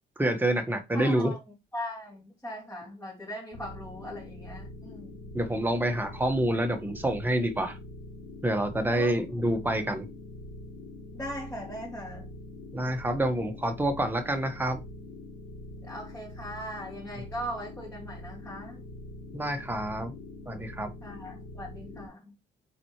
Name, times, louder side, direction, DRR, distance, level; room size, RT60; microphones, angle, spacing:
voice 1, 0.2-1.3 5.3-7.8 8.4-10.1 12.7-14.8 19.3-20.2 20.5-20.9, right 1 dB, 10° right, 1.4 m, -27 dB
voice 2, 0.9-1.4 1.7-5.1 8.9-9.2 11.1-12.3 15.8-18.8 21.0-22.3, equal, 10° left, 3.1 m, -39 dB
sound 1, 3.5-22.1, left 1 dB, 75° left, 3.8 m, -44 dB
7.7 x 4.3 x 3.2 m
cardioid pair, 90°, 20 cm